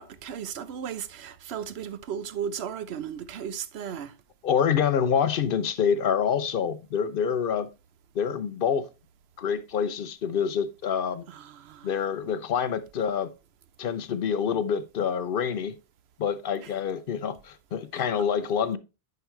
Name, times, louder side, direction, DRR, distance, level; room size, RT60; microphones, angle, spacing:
voice 1, 0.0-4.1 11.6-11.9, right 8 dB, 75° right, 0.9 m, -35 dB
voice 2, 4.4-7.7 8.2-8.9 9.4-11.2 11.8-13.3 13.8-15.8 16.2-18.8, left 7 dB, 65° left, 0.7 m, -26 dB
9.4 x 4.9 x 3.1 m
omnidirectional pair, 1.1 m